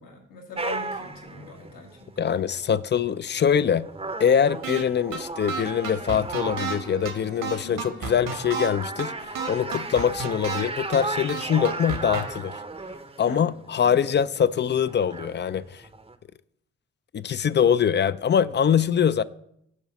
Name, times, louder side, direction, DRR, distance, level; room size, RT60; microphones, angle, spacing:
voice 1, 0.0-2.1 7.6-7.9 13.2-13.4 13.9-14.1, left 2 dB, 80° left, 1.7 m, -41 dB
sound 1, 0.6-16.2, right 3 dB, 15° right, 0.7 m, -36 dB
voice 2, 2.2-3.9 4.2-12.6 13.2-15.8 17.1-19.2, left 8 dB, 35° left, 0.4 m, -23 dB
sound 2, 4.6-4.8 5.1-5.2 5.5-6.8 7.1-7.2 7.4-8.7 9.0-9.1 9.4-10.6 10.9-11.0 11.3-12.2, right 6 dB, 70° right, 1.4 m, -31 dB
Wind instrument woodwind instrument, 6.4-10.7, right 4 dB, 90° right, 2.2 m, -50 dB
7.3 x 4.7 x 5.9 m
hypercardioid pair, 45°, 34 cm